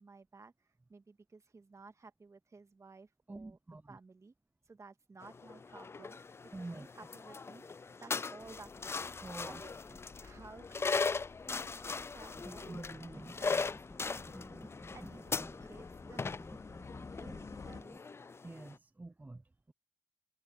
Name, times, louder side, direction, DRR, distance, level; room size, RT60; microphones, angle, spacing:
voice 1, 0.0-3.6 3.9-4.3 4.7-7.7 8.0-12.7 13.3-16.9 17.2-18.0, right 4 dB, 45° right, 2.1 m, -56 dB
voice 2, 3.3-4.0 6.5-6.9 9.2-9.6 12.7-13.3 18.4-19.7, right 2 dB, 25° right, 0.8 m, -47 dB
sound 1, 5.2-18.7, left 4 dB, 40° left, 0.4 m, -40 dB
sound 2, 8.4-17.8, left 4 dB, 55° left, 4.2 m, -53 dB
sound 3, 12.3-18.0, equal, 5° left, 2.7 m, -52 dB
supercardioid pair, 45°, 7 cm